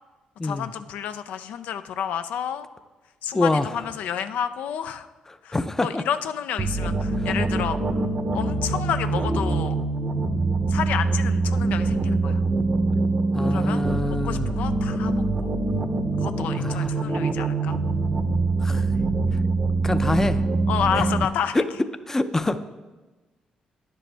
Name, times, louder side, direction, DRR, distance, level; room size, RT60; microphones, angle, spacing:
voice 1, 0.4-2.7 3.2-5.1 5.4-8.0 8.3-9.8 10.7-12.4 13.5-13.8 14.2-15.5 16.2-17.8 20.7-21.6, left 8 dB, 80° left, 10 dB, 0.3 m, -30 dB
voice 2, 3.3-3.7 5.5-6.0 7.2-7.3 13.3-14.5 16.6-16.9 18.6-18.9 19.8-20.4 22.1-22.6, left 2 dB, 15° left, 11 dB, 0.5 m, -25 dB
sound 1, 6.6-21.2, right 3 dB, 40° right, 0.7 m, -24 dB
9.8 x 7.5 x 3.4 m, 1.2 s
cardioid pair, 80°, 3 cm